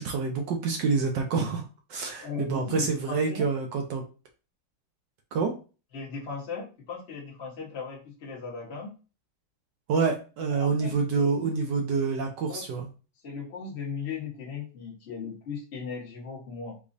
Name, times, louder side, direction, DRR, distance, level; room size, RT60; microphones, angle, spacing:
voice 1, 0.0-1.6 1.9-4.0 5.3-5.6 9.9-12.9, right 4 dB, 70° right, 3 dB, 1.1 m, -27 dB
voice 2, 2.2-3.5 5.9-8.9 10.5-12.0 12.5-12.6 13.2-16.8, left 5 dB, 40° left, -3 dB, 1.1 m, -37 dB
4.9 x 2.3 x 2.6 m, 0.33 s
omnidirectional pair, 2.3 m